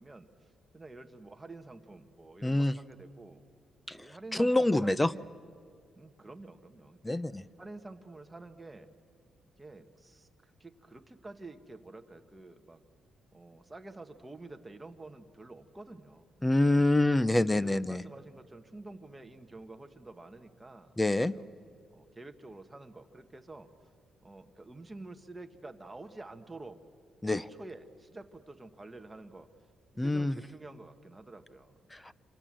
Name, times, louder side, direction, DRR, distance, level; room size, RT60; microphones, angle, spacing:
voice 1, 0.0-3.4 3.9-5.3 6.0-7.2 7.6-8.9 9.6-12.8 13.3-16.9 17.5-21.5 21.9-23.7 24.2-26.8 27.2-29.5 29.9-31.8, right 2 dB, 15° right, 7 dB, 1.4 m, -49 dB
voice 2, 2.4-2.7 3.9-4.0 4.3-5.1 7.0-7.4 16.4-18.0 21.0-21.3 27.2-27.4 30.0-30.4 31.9-32.1, left 1 dB, 10° left, 17 dB, 0.6 m, -26 dB
27.5 x 26.0 x 7.6 m, 2.3 s
cardioid pair, 130°, 0 cm